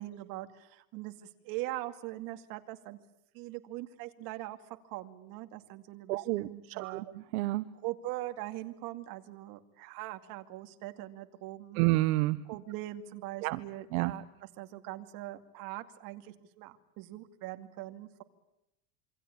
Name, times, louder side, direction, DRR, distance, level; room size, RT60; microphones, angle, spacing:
voice 1, 0.0-3.0 3.3-7.1 7.8-11.8 12.4-18.2, right 16 dB, 50° right, 8 dB, 2.4 m, -42 dB
voice 2, 6.1-6.5 6.8-7.0 7.3-7.6 11.8-12.4 13.4-13.6 13.9-14.1, right 19 dB, 70° right, 13 dB, 1.1 m, -28 dB
27.5 x 24.0 x 8.6 m, 0.83 s
supercardioid pair, 155°, 44 cm